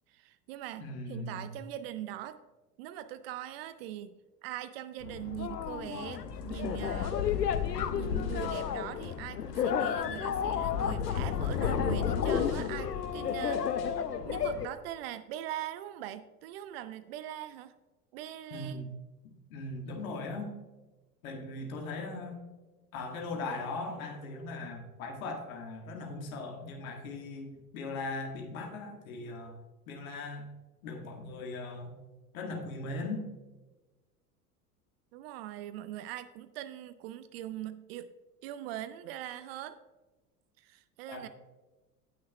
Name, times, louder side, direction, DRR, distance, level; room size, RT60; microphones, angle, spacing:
voice 1, 0.1-0.8 1.1-2.4 2.8-7.2 7.9-17.7 18.1-18.8 35.1-38.1 38.4-39.8 40.6-41.3, right 12 dB, 45° right, 14 dB, 0.5 m, -41 dB
voice 2, 0.8-1.6 18.5-18.9 19.5-20.5 21.2-22.4 22.9-29.6 29.9-30.5 30.8-32.0 32.3-33.3 41.1-41.3, left 2 dB, 60° left, 2 dB, 1.9 m, -39 dB
sound 1, 5.0-14.7, left 8 dB, 80° left, 0.7 m, -32 dB
sound 2, 6.0-8.8 9.0-14.0, left 5 dB, 45° left, 2.3 m, -44 dB
17.5 x 6.2 x 2.3 m, 1.2 s
figure-of-eight pair, 75°, 47 cm